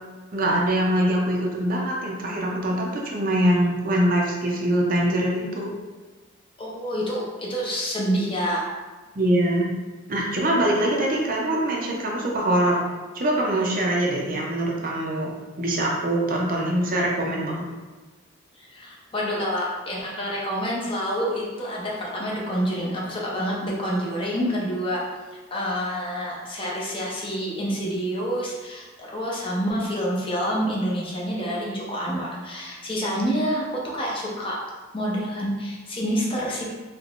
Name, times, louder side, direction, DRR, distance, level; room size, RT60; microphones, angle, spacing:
voice 1, 0.3-5.7 9.2-9.7 10.1-12.8 13.1-15.3 15.6-17.7, right 1 dB, 45° right, -2 dB, 0.5 m, -23 dB
voice 2, 6.6-8.7 18.7-25.0 25.3-34.6 34.9-36.6, equal, 25° left, -4 dB, 0.6 m, -27 dB
3.6 x 2.8 x 2.4 m, 1.3 s
head